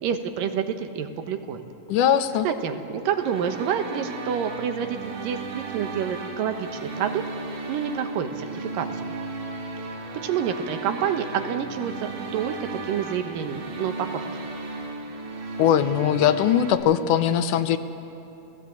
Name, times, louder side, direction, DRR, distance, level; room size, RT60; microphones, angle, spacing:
voice 1, 0.0-1.6 2.4-7.2 7.7-8.9 10.2-14.3, right 8 dB, 85° right, 7 dB, 2.9 m, -28 dB
voice 2, 1.9-2.5 15.6-17.8, left 9 dB, 75° left, 10 dB, 2.2 m, -20 dB
sound 1, 3.1-16.7, right 3 dB, 65° right, 3.5 m, -35 dB
30.0 x 16.5 x 8.4 m, 2.9 s
omnidirectional pair, 3.9 m